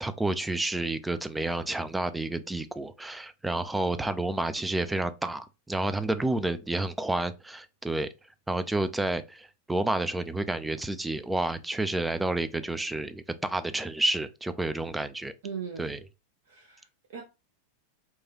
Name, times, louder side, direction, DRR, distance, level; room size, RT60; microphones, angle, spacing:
voice 1, 0.0-8.1 8.5-15.3 15.8-16.0, right 2 dB, 5° right, 0.3 m, -30 dB
voice 2, 15.4-15.9 16.5-17.2, right 6 dB, 55° right, 0.6 m, -39 dB
4.5 x 2.3 x 2.9 m
figure-of-eight pair, 90°, 0 cm